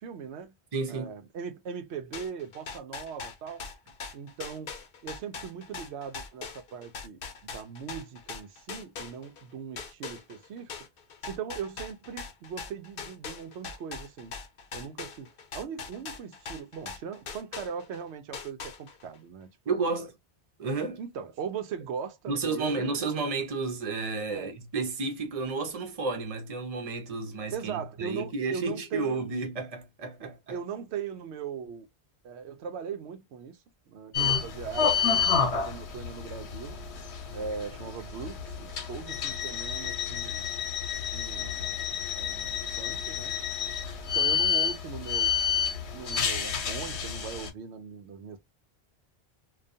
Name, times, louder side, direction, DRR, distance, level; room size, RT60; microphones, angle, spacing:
voice 1, 0.0-0.6 0.9-3.6 4.1-4.7 5.0-10.7 11.3-14.3 14.7-20.1 21.0-23.0 24.3-24.5 27.5-29.2 30.2-31.9 32.2-33.6 33.9-36.8 37.3-40.5 41.1-43.4 44.1-45.3 45.9-48.4, right 7 dB, 85° right, 0.9 m, -39 dB
voice 2, 0.7-1.1 19.7-20.1 20.6-21.0 22.3-30.6, right 3 dB, 40° right, 0.7 m, -32 dB
sound 1, 2.1-9.4 9.8-18.0 18.3-19.1, left 5 dB, 60° left, 0.8 m, -41 dB
sound 2, 34.1-47.5, left 7 dB, 85° left, 1.0 m, -30 dB
2.4 x 2.3 x 2.5 m
omnidirectional pair, 1.1 m